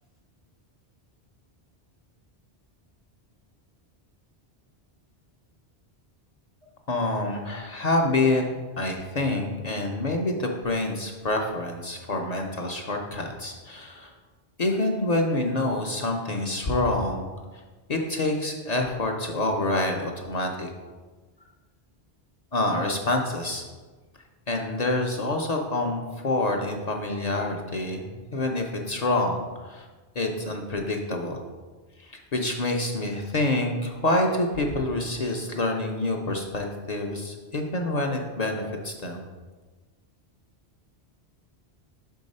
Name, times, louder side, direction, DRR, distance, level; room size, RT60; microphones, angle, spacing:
voice 1, 6.9-8.5 8.8-14.1 14.6-17.3 17.9-20.7 22.5-23.6 24.5-29.8 30.2-31.4 32.0-39.3, left 2 dB, 45° left, 1 dB, 0.6 m, -27 dB
5.6 x 4.6 x 5.4 m, 1.3 s
omnidirectional pair, 1.1 m